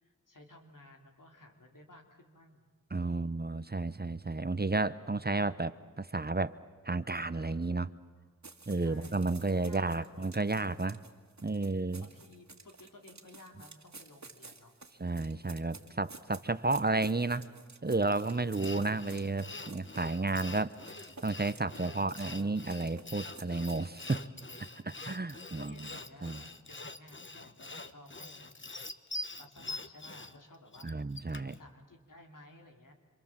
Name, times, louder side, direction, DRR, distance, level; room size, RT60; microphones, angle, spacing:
voice 1, 0.0-2.7 3.0-3.3 8.8-10.2 12.0-14.7 18.3-18.9 21.8-22.6 24.5-24.9 25.6-28.6 29.4-30.9 31.5-32.9, left 1 dB, 80° left, 2 dB, 3.3 m, -55 dB
voice 2, 2.9-6.6 6.8-7.9 8.7-11.0 11.4-12.1 15.0-17.4 17.8-20.7 21.2-24.3 24.8-25.7 26.2-26.4 30.8-31.5, right 3 dB, 30° right, 14 dB, 0.9 m, -32 dB
sound 1, 8.4-24.2, right 3 dB, 60° right, 2.1 m, -53 dB
Sawing, 18.0-31.6, left 2 dB, 40° left, 1.2 m, -45 dB
27.5 x 26.5 x 7.5 m, 1.4 s
wide cardioid pair, 45°, 31 cm